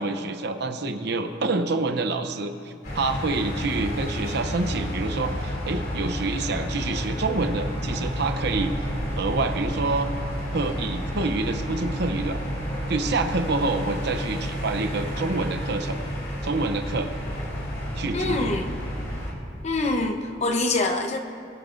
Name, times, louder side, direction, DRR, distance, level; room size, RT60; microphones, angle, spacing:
voice 1, 0.0-8.7 9.1-10.1 10.5-12.4 12.9-16.0 16.4-17.1 18.0-18.5, right 3 dB, 60° right, 8 dB, 0.7 m, -27 dB
sound 1, 2.8-19.3, equal, 50° left, 2.7 m, -30 dB
voice 2, 18.1-18.7 19.6-21.2, left 2 dB, 35° left, 5 dB, 0.9 m, -25 dB
23.5 x 12.0 x 2.6 m, 2.6 s
head